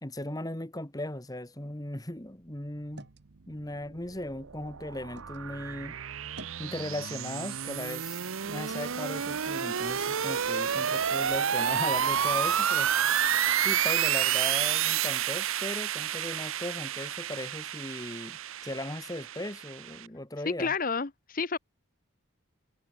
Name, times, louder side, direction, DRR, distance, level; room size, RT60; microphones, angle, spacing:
voice 1, 0.0-3.1 3.5-6.0 6.6-13.1 13.6-20.7, left 1 dB, 15° left, 1.7 m, -38 dB
sound 1, 2.2-5.4 5.8-6.7, right 1 dB, 50° right, 4.9 m, -54 dB
sound 2, 4.0-20.1, right 9 dB, 70° right, 0.8 m, -30 dB
voice 2, 20.4-21.6, left 4 dB, 40° left, 0.9 m, -30 dB
head